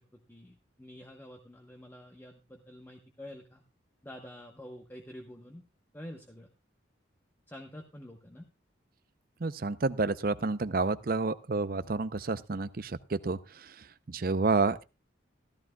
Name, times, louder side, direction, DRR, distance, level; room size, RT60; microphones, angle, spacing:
voice 1, 0.0-3.6 4.0-5.6 5.9-6.5 7.5-8.4, left 1 dB, 10° left, 2 dB, 1.0 m, -48 dB
voice 2, 9.4-13.7 14.1-14.8, right 3 dB, 50° right, 14 dB, 0.6 m, -30 dB
15.0 x 14.0 x 2.3 m, 0.26 s
head